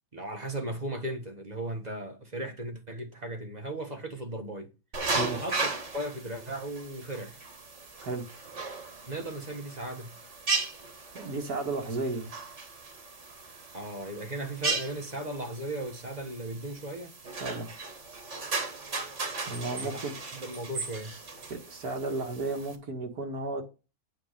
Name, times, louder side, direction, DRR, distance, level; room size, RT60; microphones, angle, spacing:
voice 1, 0.1-4.7 5.3-7.4 9.1-10.2 13.7-17.1 19.7-20.0 20.3-21.2, right 1 dB, 30° right, 1.5 m, -37 dB
sound 1, 4.9-22.8, right 3 dB, 50° right, 2.0 m, -36 dB
voice 2, 5.1-5.5 8.0-8.2 11.1-12.3 17.4-17.7 19.5-20.1 21.5-23.6, right 3 dB, 80° right, 2.3 m, -33 dB
9.3 x 4.7 x 6.7 m
omnidirectional pair, 1.6 m